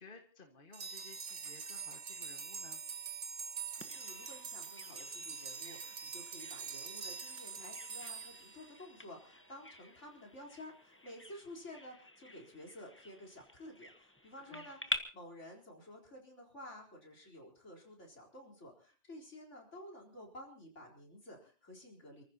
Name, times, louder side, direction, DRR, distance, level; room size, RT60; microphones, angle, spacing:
voice 1, 0.0-2.8 14.5-14.7, left 3 dB, 45° left, 3 dB, 2.0 m, -56 dB
sound 1, 0.7-9.3, right 6 dB, 75° right, 1.6 m, -45 dB
voice 2, 3.8-22.2, left 1 dB, 85° left, -1 dB, 4.6 m, -52 dB
Bird vocalization bird call bird song, 3.8-15.0, left 1 dB, 10° left, 1.2 m, -48 dB
29.0 x 15.0 x 3.0 m, 0.37 s
omnidirectional pair, 1.2 m